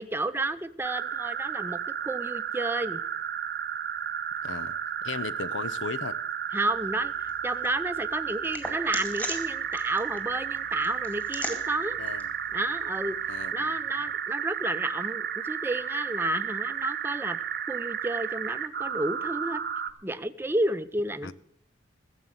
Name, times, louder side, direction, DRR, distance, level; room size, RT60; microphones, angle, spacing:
voice 1, 0.0-3.0 6.5-12.0 12.5-13.2 13.5-17.4 17.7-19.6 20.0-21.3, right 2 dB, 10° right, 0.6 m, -31 dB
sound 1, 0.8-19.9, right 8 dB, 55° right, 0.9 m, -33 dB
voice 2, 4.4-4.8 5.0-6.2 12.0-12.3 13.3-13.7 21.2-21.3, left 4 dB, 90° left, 0.7 m, -36 dB
sound 2, 6.7-13.5, equal, 10° left, 2.2 m, -42 dB
15.0 x 7.3 x 8.0 m
head